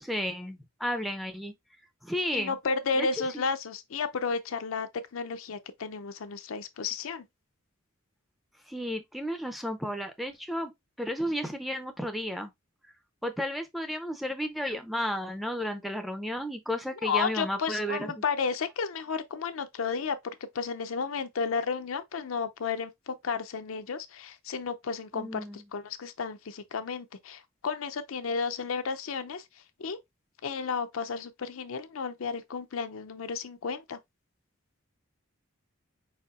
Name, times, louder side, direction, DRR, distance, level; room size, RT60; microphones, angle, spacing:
voice 1, 0.0-1.5 2.0-2.6 3.0-3.1 3.3-3.4 8.7-12.5 13.2-18.1 25.1-25.6, equal, ahead, 0.4 m, -33 dB
voice 2, 2.3-7.3 17.0-29.5 29.8-30.0 30.4-34.0, left 5 dB, 80° left, 0.5 m, -32 dB
4.5 x 4.2 x 2.4 m
head